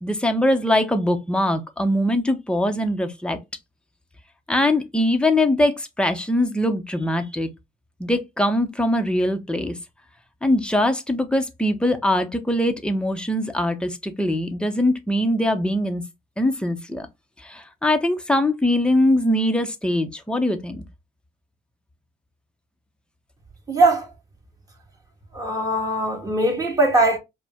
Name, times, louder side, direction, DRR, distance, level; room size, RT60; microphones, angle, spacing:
voice 1, 0.0-3.4 4.5-7.5 8.0-9.8 10.4-16.0 16.4-17.1 17.4-20.8, left 1 dB, 5° left, 0.9 m, -22 dB
voice 2, 23.7-24.1 25.3-27.2, right 2 dB, 20° right, 2.0 m, -20 dB
4.8 x 2.2 x 3.5 m
cardioid pair, 75°, 16 cm